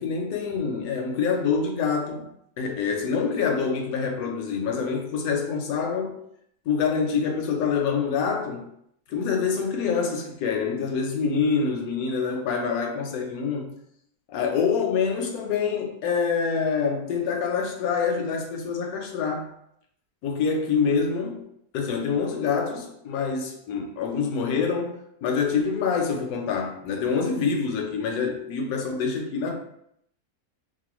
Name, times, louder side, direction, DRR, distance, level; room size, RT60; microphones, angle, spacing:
voice 1, 0.0-2.3 2.6-6.2 6.7-8.7 9.1-13.7 14.3-19.5 20.2-21.5 21.7-29.5, left 5 dB, 75° left, 1.0 m, -26 dB
2.9 x 2.1 x 2.9 m
omnidirectional pair, 1.6 m